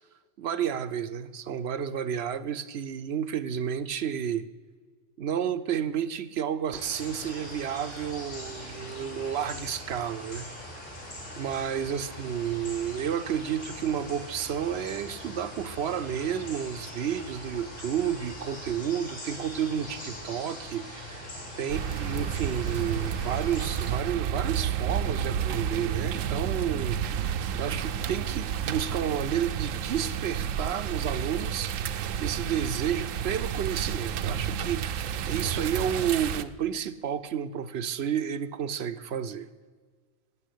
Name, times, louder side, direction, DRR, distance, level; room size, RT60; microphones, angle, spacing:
voice 1, 0.4-4.4 5.2-10.4 11.4-21.1 21.6-39.5, right 8 dB, 60° right, 13 dB, 0.8 m, -31 dB
sound 1, 6.8-23.9, left 1 dB, 75° left, 3.9 m, -42 dB
sound 2, 21.7-36.4, right 8 dB, 85° right, 1.0 m, -31 dB
12.5 x 8.8 x 8.3 m, 1.5 s
omnidirectional pair, 1.3 m